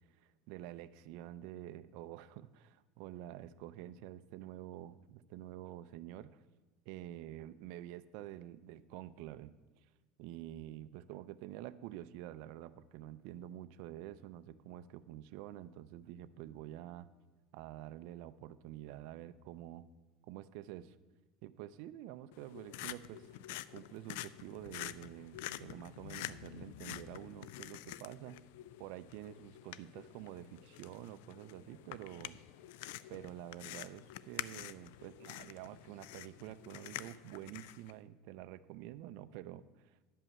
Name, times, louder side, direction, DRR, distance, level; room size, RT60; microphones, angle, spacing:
voice 1, 0.1-6.4 6.9-9.5 10.2-17.1 17.5-19.9 20.3-21.0 21.4-28.4 28.8-32.4 33.1-40.0, right 13 dB, 65° right, 13 dB, 0.5 m, -48 dB
sound 1, 22.3-37.9, left 14 dB, 80° left, 0.3 m, -48 dB
11.0 x 5.5 x 7.3 m, 1.2 s
cardioid pair, 145°, 0 cm